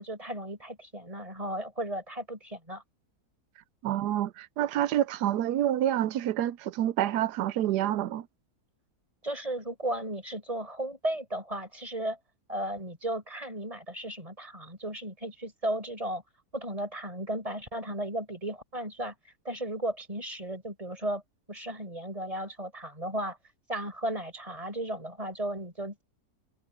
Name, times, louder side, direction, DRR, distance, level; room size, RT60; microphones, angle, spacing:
voice 1, 0.0-2.8 9.2-12.2 12.5-16.2 16.5-19.2 19.4-21.2 21.5-23.4 23.7-26.0, right 1 dB, 20° right, 5.8 m, -35 dB
voice 2, 3.8-8.3, right 12 dB, 90° right, 1.2 m, -28 dB
omnidirectional pair, 1.7 m